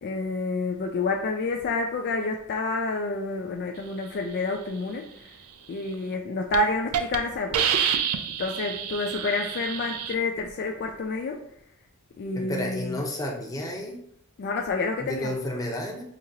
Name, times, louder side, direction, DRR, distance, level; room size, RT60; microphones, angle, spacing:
voice 1, 0.0-5.3 5.7-7.7 8.4-11.4 12.2-13.0 14.4-15.3, left 3 dB, 50° left, 2 dB, 0.3 m, -29 dB
Hiss, 5.9-6.2 6.5-6.6 6.9-7.2 7.5-10.1, right 8 dB, 90° right, 0.4 m, -27 dB
voice 2, 12.3-14.0 15.0-16.0, left 1 dB, 15° left, -1 dB, 0.8 m, -31 dB
5.0 x 2.8 x 2.8 m, 0.70 s
head